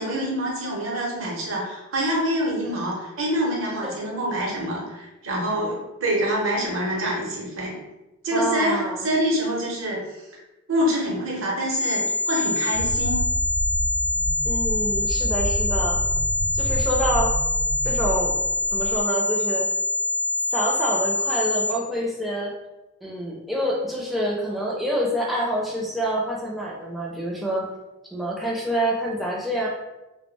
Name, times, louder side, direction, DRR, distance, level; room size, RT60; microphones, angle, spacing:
voice 1, 0.0-5.8 6.0-7.7 8.2-10.3 10.7-13.2, equal, 60° right, -3 dB, 0.7 m, -26 dB
voice 2, 8.3-9.1 14.4-16.0 16.5-17.3 17.8-18.3 18.7-19.7 20.5-22.5 23.0-27.7 28.1-29.7, right 1 dB, ahead, -4 dB, 0.4 m, -27 dB
sound 1, 11.7-21.7, left 2 dB, 70° left, 0.5 m, -25 dB
sound 2, 12.7-19.0, equal, 80° right, 0.3 m, -28 dB
2.2 x 2.1 x 3.2 m, 1.0 s
head